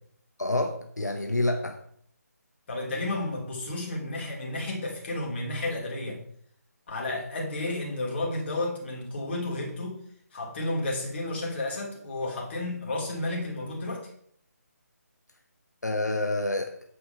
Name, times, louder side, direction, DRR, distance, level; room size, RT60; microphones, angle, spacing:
voice 1, 0.4-1.8 15.8-16.7, left 2 dB, 90° left, 5 dB, 1.1 m, -28 dB
voice 2, 2.7-6.2 6.9-10.0 10.3-14.1, left 2 dB, 40° left, -2 dB, 2.9 m, -32 dB
7.9 x 5.7 x 5.6 m, 0.64 s
figure-of-eight pair, 155°, 9 cm